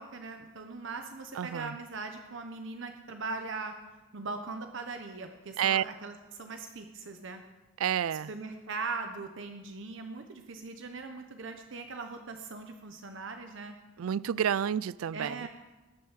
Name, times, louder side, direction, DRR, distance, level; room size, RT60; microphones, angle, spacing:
voice 1, 0.0-3.7 4.1-7.4 8.1-13.8 15.1-15.5, right 3 dB, 60° right, 5 dB, 1.0 m, -40 dB
voice 2, 1.4-1.7 5.6-5.8 7.8-8.3 14.0-15.5, right 9 dB, 75° right, 21 dB, 0.4 m, -29 dB
19.0 x 7.0 x 7.3 m, 1.2 s
head